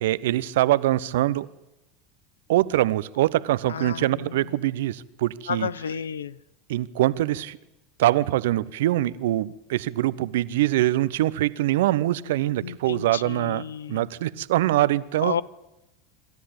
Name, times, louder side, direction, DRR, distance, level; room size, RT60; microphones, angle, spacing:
voice 1, 0.0-1.5 2.5-5.7 6.7-7.6 8.0-13.6 13.9-15.4, right 15 dB, 70° right, 18 dB, 0.8 m, -23 dB
voice 2, 3.7-4.5 5.5-6.4 12.6-14.0 15.2-15.4, left 7 dB, 80° left, 21 dB, 0.6 m, -32 dB
26.5 x 13.0 x 8.8 m, 0.96 s
hypercardioid pair, 80°, 0 cm